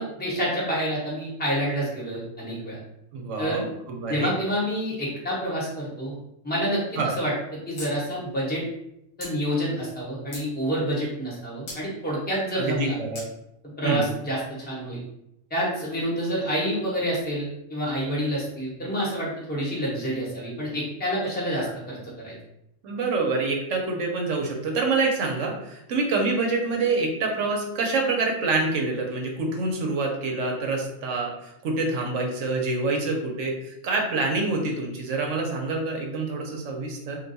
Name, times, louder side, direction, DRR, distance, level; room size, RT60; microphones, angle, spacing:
voice 1, 0.0-2.8 3.4-3.6 4.1-6.1 6.4-7.3 7.7-8.6 9.2-13.0 13.8-15.0 15.5-22.3, equal, 10° left, -6 dB, 0.9 m, -28 dB
voice 2, 3.1-4.3 7.0-7.2 12.5-13.2 13.8-14.1 22.8-37.2, right 3 dB, 70° right, 1 dB, 1.0 m, -26 dB
sound 1, 7.8-7.9 8.2-8.3 9.2-9.3 10.0-10.5 11.7-11.8 13.2-13.3, left 2 dB, 65° left, 1.1 m, -38 dB
2.5 x 2.2 x 4.0 m, 0.81 s
omnidirectional pair, 1.3 m